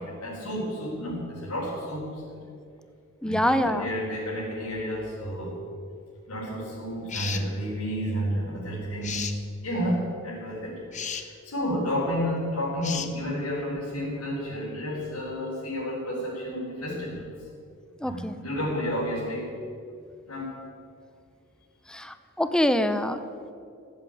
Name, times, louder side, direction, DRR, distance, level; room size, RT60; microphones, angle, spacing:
voice 1, 0.0-2.4 3.2-5.6 6.3-9.3 9.6-10.8 11.1-17.3 18.0-19.6 20.3-20.6, equal, 80° left, -6 dB, 4.2 m, -31 dB
voice 2, 3.2-3.9 18.0-18.4 21.9-23.2, left 1 dB, 5° left, 10 dB, 0.6 m, -25 dB
sound 1, 7.1-7.5 9.0-9.4 10.9-11.3 12.8-13.1, left 7 dB, 35° left, 0.9 m, -33 dB
15.0 x 7.6 x 9.1 m, 2.5 s
head